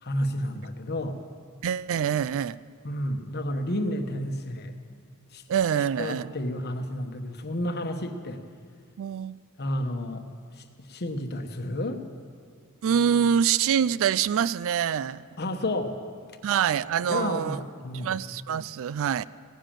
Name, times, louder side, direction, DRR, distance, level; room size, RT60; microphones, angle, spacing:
voice 1, 0.0-1.2 2.8-4.7 5.3-5.4 6.0-8.4 9.6-10.3 10.5-12.0 15.4-16.0 17.1-18.1, left 1 dB, 45° left, 6 dB, 1.1 m, -31 dB
voice 2, 1.6-2.6 5.5-6.3 9.0-9.4 12.8-15.2 16.4-17.6 17.9-19.2, right 8 dB, 65° right, 19 dB, 0.3 m, -25 dB
16.5 x 10.0 x 7.4 m, 2.1 s
head